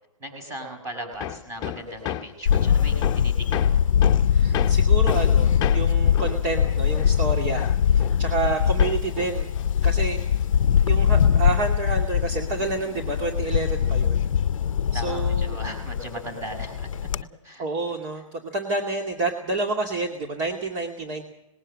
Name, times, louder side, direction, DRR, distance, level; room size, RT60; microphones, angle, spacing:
voice 1, 0.2-3.8 8.4-8.7 14.9-16.9 17.4-17.6, right 1 dB, 15° right, 5 dB, 5.9 m, -37 dB
Hammer, 1.2-8.5 8.8-10.6, left 11 dB, 25° left, 1.0 m, -33 dB
Camera, 2.5-17.2, left 8 dB, 75° left, 0.7 m, -22 dB
voice 2, 4.3-9.6 9.8-10.4 10.8-14.3 14.9-15.6 17.6-21.2, right 3 dB, 35° right, 3 dB, 2.5 m, -29 dB
20.0 x 18.0 x 7.5 m, 0.89 s
hypercardioid pair, 140°, 17 cm